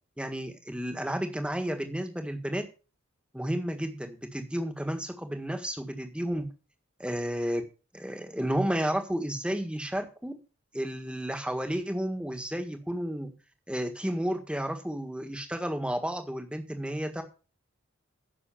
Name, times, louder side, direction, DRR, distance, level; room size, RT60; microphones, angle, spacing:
voice 1, 0.2-2.6 3.3-6.5 7.0-7.6 7.9-10.3 10.7-13.3 13.7-17.2, equal, 5° right, 6 dB, 1.6 m, -32 dB
10.0 x 6.8 x 7.0 m, 0.33 s
head